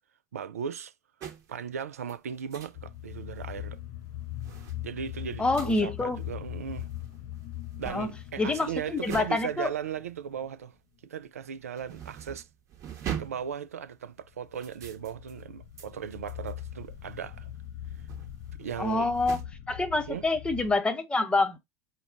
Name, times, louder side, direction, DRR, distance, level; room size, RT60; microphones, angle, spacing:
voice 1, 0.3-0.9 1.5-3.8 4.8-6.9 7.8-10.8 11.0-12.5 13.2-17.5 18.6-19.1 20.1-20.3, right 8 dB, 75° right, 0.4 m, -37 dB
sound 1, 1.2-1.6 2.0-2.8 3.1-3.6 4.0-11.0 11.2-19.4, right 9 dB, 40° right, 1.0 m, -43 dB
sound 2, 2.7-10.5 14.2-20.8, left 12 dB, 50° left, 0.5 m, -41 dB
voice 2, 5.4-6.2 7.9-8.1 8.4-9.7 18.8-19.4 19.7-21.6, left 3 dB, 10° left, 0.8 m, -27 dB
4.9 x 2.2 x 3.9 m
figure-of-eight pair, 75°, 8 cm